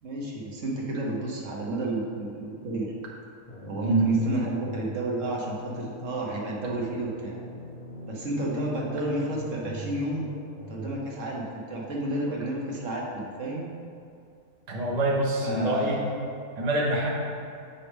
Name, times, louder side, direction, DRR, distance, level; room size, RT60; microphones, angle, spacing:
voice 1, 0.0-2.9 3.7-7.4 8.1-10.3 10.7-13.7 15.4-16.1, right 1 dB, 60° right, -3 dB, 1.3 m, -31 dB
sound 1, 3.5-11.0, right 1 dB, 35° left, 0.8 m, -42 dB
voice 2, 14.7-16.0 16.6-17.1, right 1 dB, 35° right, -3 dB, 0.9 m, -25 dB
8.2 x 5.2 x 3.5 m, 2.5 s
omnidirectional pair, 1.6 m